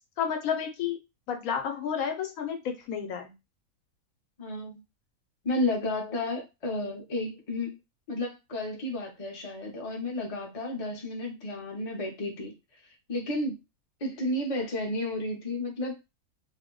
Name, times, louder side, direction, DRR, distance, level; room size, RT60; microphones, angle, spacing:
voice 1, 0.2-1.0 1.3-3.3, left 7 dB, 75° left, 5 dB, 1.0 m, -31 dB
voice 2, 4.4-4.8 5.4-7.8 8.1-12.5 13.1-13.6 14.0-16.0, left 1 dB, 35° left, 1 dB, 0.6 m, -32 dB
2.6 x 2.1 x 3.7 m, 0.24 s
omnidirectional pair, 1.5 m